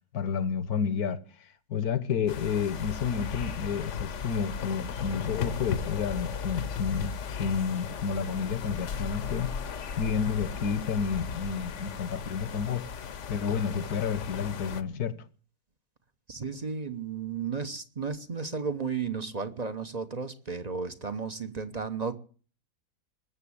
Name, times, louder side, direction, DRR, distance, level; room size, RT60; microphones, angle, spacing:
voice 1, 0.1-12.9 13.3-15.1, left 6 dB, 75° left, 1.6 m, -30 dB
sound 1, 2.3-14.8, left 7 dB, 55° left, 1.1 m, -36 dB
voice 2, 16.3-22.1, right 5 dB, 30° right, 0.9 m, -34 dB
20.5 x 7.4 x 8.6 m
omnidirectional pair, 1.7 m